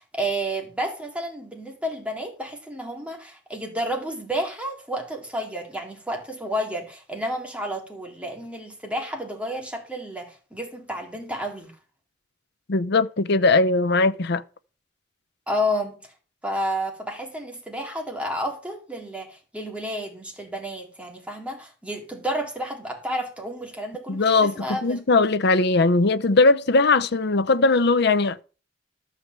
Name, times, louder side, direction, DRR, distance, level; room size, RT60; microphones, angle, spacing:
voice 1, 0.0-11.7 15.5-16.0 16.4-25.0, equal, 5° right, 2.2 m, -31 dB
voice 2, 12.7-14.4 24.1-28.4, left 3 dB, 60° left, 0.7 m, -19 dB
12.5 x 4.9 x 7.5 m
head